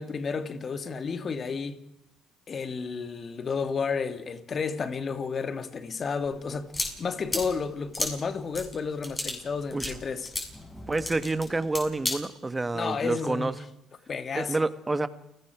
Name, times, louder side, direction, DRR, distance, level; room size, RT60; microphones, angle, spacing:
voice 1, 0.0-1.8 2.5-6.7 7.0-10.3 12.7-13.5 14.1-14.7, left 5 dB, 45° left, 2.1 m, -32 dB
sound 1, 6.2-12.2, left 2 dB, 20° left, 7.3 m, -35 dB
voice 2, 10.9-13.5 14.3-15.1, right 2 dB, 20° right, 1.6 m, -28 dB
29.5 x 18.5 x 4.8 m
supercardioid pair, 70°, 0 cm